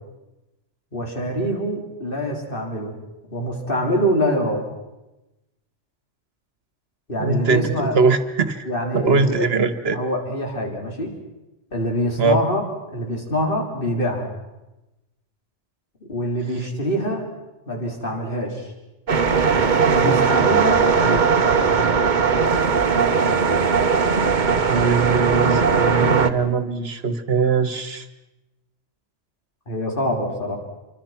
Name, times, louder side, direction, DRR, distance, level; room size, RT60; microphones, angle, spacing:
voice 1, 0.9-2.9 3.3-4.6 7.1-8.0 8.6-9.5 9.9-11.1 11.7-12.6 12.9-14.3 16.1-17.3 17.7-18.7 19.8-21.6 29.7-30.6, equal, 45° left, 1 dB, 4.2 m, -25 dB
voice 2, 7.2-8.6 8.9-10.0 12.2-12.4 24.7-28.1, right 4 dB, 55° right, 12 dB, 1.7 m, -21 dB
sound 1, 19.1-26.3, right 5 dB, 40° right, 1.1 m, -18 dB
27.5 x 24.0 x 5.9 m, 1.0 s
omnidirectional pair, 1.2 m